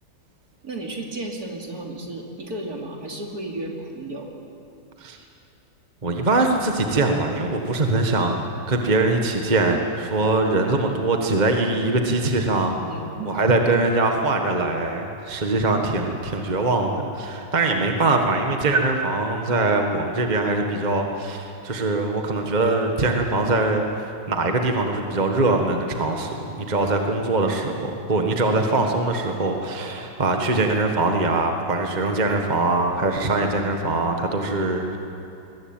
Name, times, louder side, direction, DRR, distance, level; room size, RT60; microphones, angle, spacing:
voice 1, 0.6-4.3 12.7-13.3, right 2 dB, 55° right, 0 dB, 3.4 m, -33 dB
voice 2, 6.0-12.8 13.2-23.8 24.3-35.0, right 2 dB, 25° right, 3 dB, 1.5 m, -22 dB
22.5 x 20.5 x 8.9 m, 2.8 s
omnidirectional pair, 1.9 m